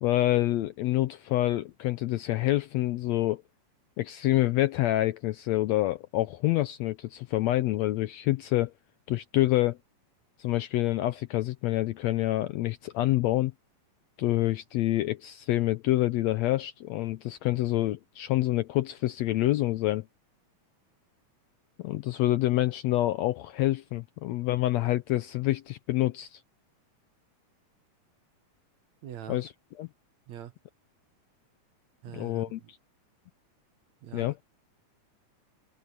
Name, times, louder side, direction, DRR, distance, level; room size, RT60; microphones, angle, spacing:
voice 1, 0.0-3.4 4.0-8.7 9.1-9.8 10.4-13.5 14.2-20.0 21.8-26.4 29.3-29.5 29.8-29.9 32.1-32.8 34.1-34.3, left 15 dB, 75° left, 1.6 m, -27 dB
voice 2, 29.0-29.4 30.3-30.5 32.0-32.7 34.0-34.4, right 10 dB, 65° right, 2.4 m, -43 dB
omnidirectional pair, 3.6 m